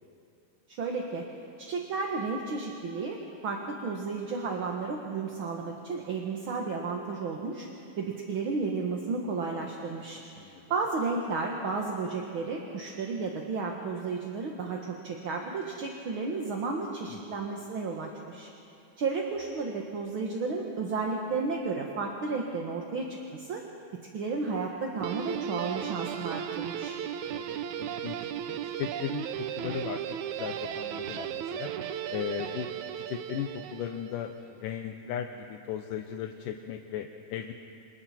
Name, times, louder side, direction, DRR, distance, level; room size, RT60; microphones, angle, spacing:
voice 1, 0.7-1.3 1.6-3.2 3.4-7.7 8.0-10.2 10.7-18.5 19.0-23.6 24.1-27.0, right 4 dB, 50° right, 0 dB, 1.8 m, -33 dB
voice 2, 17.1-17.4 27.3-31.7 32.1-32.7 33.0-37.5, left 9 dB, 80° left, 4 dB, 2.5 m, -37 dB
Guitar, 25.0-34.3, right 10 dB, 70° right, 1.9 m, -36 dB
30.0 x 28.0 x 4.4 m, 2.8 s
omnidirectional pair, 3.8 m